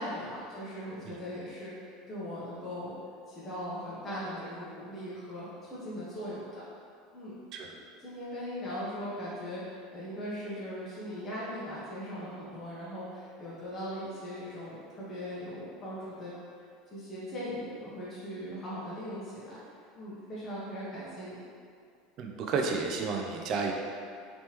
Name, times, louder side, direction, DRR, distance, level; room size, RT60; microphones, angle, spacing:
voice 1, 0.0-3.0 3.3-6.6 7.1-7.4 8.0-16.3 16.9-19.6 19.9-21.4, equal, 25° left, -10 dB, 0.9 m, -39 dB
voice 2, 22.2-23.7, right 4 dB, 50° right, 1 dB, 0.5 m, -31 dB
3.4 x 3.0 x 3.0 m, 2.3 s
supercardioid pair, 115°, 0 cm